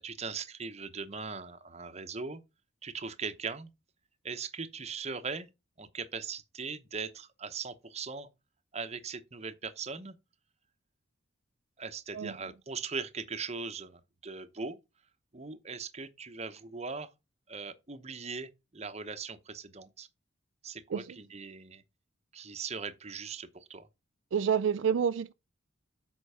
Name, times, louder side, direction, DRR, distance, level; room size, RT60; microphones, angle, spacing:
voice 1, 0.0-2.4 2.8-3.7 4.2-5.5 5.8-8.3 8.7-10.1 11.8-14.8 15.3-17.1 17.5-20.1 20.6-21.8 22.3-23.9, right 5 dB, 30° right, 0.9 m, -40 dB
voice 2, 24.3-25.3, right 7 dB, 65° right, 0.4 m, -28 dB
8.3 x 5.4 x 5.5 m
head